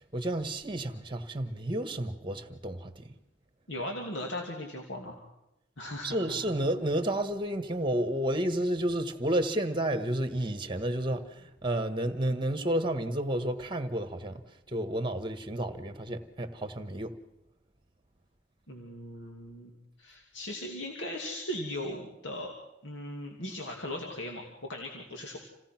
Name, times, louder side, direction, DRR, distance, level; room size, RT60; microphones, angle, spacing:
voice 1, 0.0-3.1 6.0-17.2, right 1 dB, 25° right, 1.6 m, -31 dB
voice 2, 3.7-5.2 5.8-6.4 18.7-22.5 22.8-25.4, left 1 dB, 80° left, 2.7 m, -38 dB
27.5 x 17.5 x 6.0 m
head